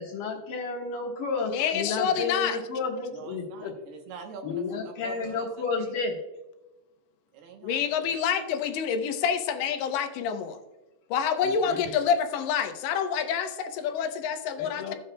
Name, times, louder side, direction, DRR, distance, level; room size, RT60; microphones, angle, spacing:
voice 1, 0.0-3.7 4.4-6.2 11.4-11.9 14.6-14.9, left 4 dB, 60° left, -3 dB, 2.4 m, -32 dB
voice 2, 1.5-2.6 7.6-10.6 11.1-15.0, left 7 dB, 80° left, 6 dB, 3.0 m, -27 dB
voice 3, 3.1-5.4 5.8-5.9 7.3-8.0, right 6 dB, 75° right, 3 dB, 2.7 m, -44 dB
14.0 x 8.1 x 2.2 m, 1.0 s
omnidirectional pair, 5.1 m